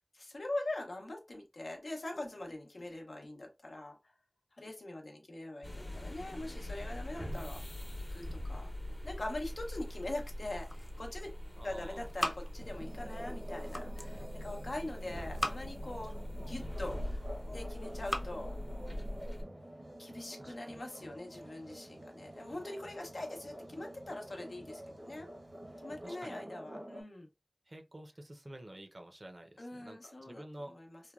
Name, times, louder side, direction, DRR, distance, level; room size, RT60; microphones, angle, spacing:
voice 1, 0.1-3.9 4.6-7.6 8.1-8.7 9.0-11.3 11.6-17.2 17.5-18.5 20.0-25.3 25.8-27.3 29.6-31.0, left 2 dB, 85° left, 0.7 m, -43 dB
sound 1, 5.6-19.4, left 1 dB, 45° left, 0.8 m, -42 dB
sound 2, 10.2-11.2 11.5-13.0 13.4-14.2 15.0-15.9 16.5-17.3 17.8-18.4, equal, 15° left, 0.5 m, -41 dB
voice 2, 11.6-12.1 20.4-20.5 26.0-26.4 27.7-30.8, right 1 dB, 50° right, 0.5 m, -49 dB
sound 3, 12.6-27.0, right 1 dB, 75° right, 0.8 m, -48 dB
3.1 x 2.2 x 2.3 m
wide cardioid pair, 45°, 0 cm